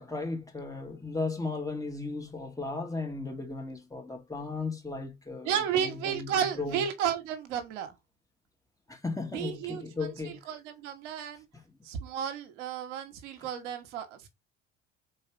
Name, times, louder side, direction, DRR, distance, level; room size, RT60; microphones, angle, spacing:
voice 1, 0.0-6.8 8.9-10.4 11.5-11.6, left 3 dB, 10° left, 2.5 m, -36 dB
voice 2, 5.4-7.9 9.3-11.4 11.8-14.3, right 8 dB, 70° right, 1.5 m, -33 dB
5.5 x 4.2 x 5.2 m
hypercardioid pair, 65°, 37 cm